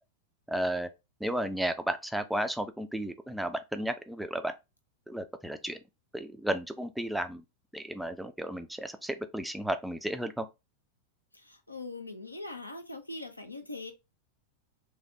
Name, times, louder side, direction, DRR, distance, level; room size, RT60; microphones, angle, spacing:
voice 1, 0.5-0.9 1.2-4.5 5.1-5.8 6.1-7.4 7.7-10.5, right 1 dB, ahead, 0.3 m, -33 dB
voice 2, 11.3-13.9, left 2 dB, 85° left, 0.5 m, -41 dB
3.2 x 2.2 x 2.6 m
figure-of-eight pair, 90°, 0 cm